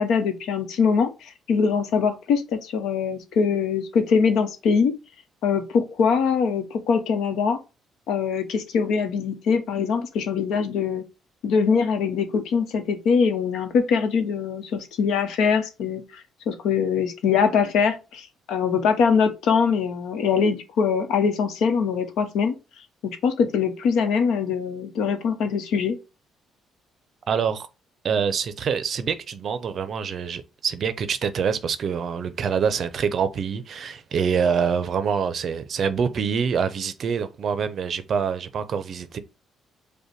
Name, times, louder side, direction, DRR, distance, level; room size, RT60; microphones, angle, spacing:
voice 1, 0.0-4.9 5.4-7.6 8.1-11.0 11.4-22.5 23.0-25.9, left 6 dB, 75° left, 0.9 m, -23 dB
voice 2, 27.3-27.7 28.0-39.2, right 6 dB, 45° right, 0.5 m, -25 dB
5.4 x 2.2 x 4.4 m
cardioid pair, 145°, 0 cm